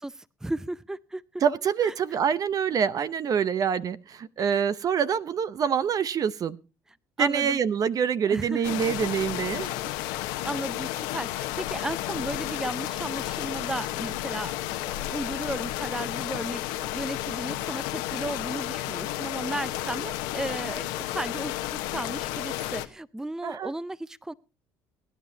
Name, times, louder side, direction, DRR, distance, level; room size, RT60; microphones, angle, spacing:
voice 1, 0.4-1.4 1.8-1.9 4.5-4.6 7.2-7.6 8.2-8.7 10.0-14.5 14.8-20.1 20.3-24.3, right 1 dB, 5° right, 18 dB, 0.5 m, -35 dB
voice 2, 1.4-6.6 7.2-9.8 20.0-20.1 23.4-23.7, right 7 dB, 50° right, 15 dB, 0.7 m, -26 dB
sound 1, 8.6-22.9, left 15 dB, 85° left, 1.0 m, -32 dB
22.5 x 10.5 x 2.8 m, 0.33 s
supercardioid pair, 80°, 8 cm